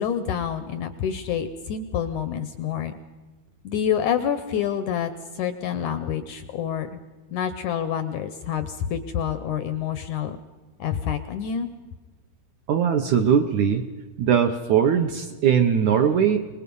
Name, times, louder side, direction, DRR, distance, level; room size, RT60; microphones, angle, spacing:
voice 1, 0.0-2.9 3.6-7.0 7.3-10.4 10.8-11.7, left 8 dB, 80° left, 11 dB, 1.7 m, -27 dB
voice 2, 12.7-13.8 14.2-16.4, right 8 dB, 75° right, 7 dB, 1.7 m, -20 dB
25.5 x 20.5 x 5.4 m, 1.3 s
omnidirectional pair, 4.5 m